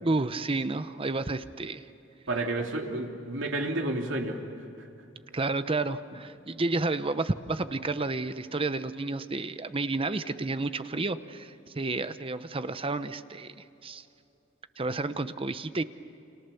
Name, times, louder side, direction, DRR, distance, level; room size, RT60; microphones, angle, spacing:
voice 1, 0.0-1.9 5.3-14.0 14.8-15.8, right 3 dB, 30° right, 12 dB, 0.8 m, -31 dB
voice 2, 2.3-4.4, right 2 dB, 75° right, 2 dB, 3.0 m, -30 dB
30.0 x 27.5 x 7.0 m, 2.8 s
head